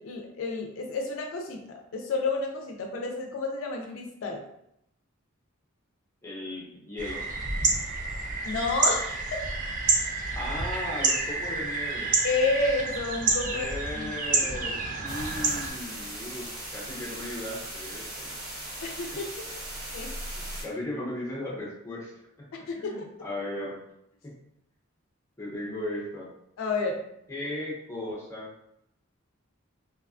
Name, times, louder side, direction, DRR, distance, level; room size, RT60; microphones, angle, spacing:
voice 1, 0.0-1.6 1.9-4.4 8.4-9.2 12.2-13.7 14.0-14.1 18.8-19.2 19.9-20.1 22.7-22.9 26.6-27.0, left 3 dB, 65° left, 2 dB, 0.4 m, -30 dB
voice 2, 6.2-7.3 10.3-12.2 13.5-18.3 19.1-19.2 20.3-22.1 22.4-23.8 24.2-24.3 25.4-26.3 27.3-28.5, left 1 dB, 15° left, -4 dB, 0.6 m, -36 dB
sound 1, 7.0-15.7, right 3 dB, 40° right, 0.4 m, -28 dB
sound 2, 15.1-20.6, right 1 dB, 65° right, 1.0 m, -38 dB
2.6 x 2.2 x 2.4 m, 0.77 s
head